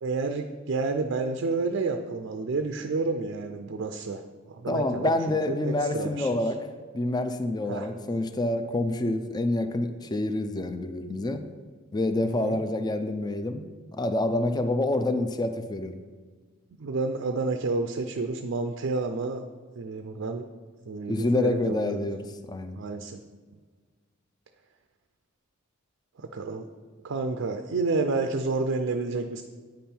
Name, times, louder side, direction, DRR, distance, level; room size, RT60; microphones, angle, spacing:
voice 1, 0.0-4.2 4.5-6.4 7.7-7.9 12.2-12.6 16.8-19.4 19.8-20.5 20.9-22.0 22.7-23.2 26.2-26.7 27.0-29.4, right 3 dB, 65° right, 6 dB, 0.4 m, -30 dB
voice 2, 4.7-6.7 6.9-11.4 11.9-16.0 21.1-22.8, left 2 dB, 20° left, 8 dB, 0.4 m, -27 dB
9.2 x 5.4 x 4.4 m, 1.5 s
head